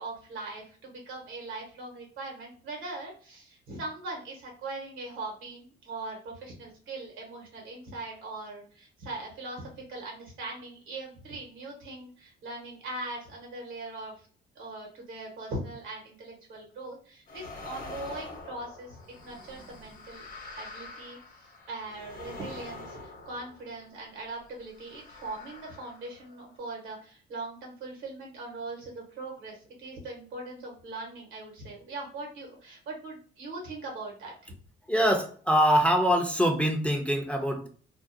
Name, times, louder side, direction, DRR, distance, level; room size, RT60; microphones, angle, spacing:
voice 1, 0.0-14.1 14.5-20.2 20.6-34.5, right 2 dB, 85° right, 0 dB, 1.1 m, -40 dB
sound 1, 17.3-24.0 24.7-26.6, left 2 dB, 45° left, 0.8 m, -45 dB
voice 2, 34.9-37.7, equal, 5° left, 3 dB, 0.4 m, -24 dB
2.5 x 2.0 x 2.6 m, 0.43 s
cardioid pair, 90°, 20 cm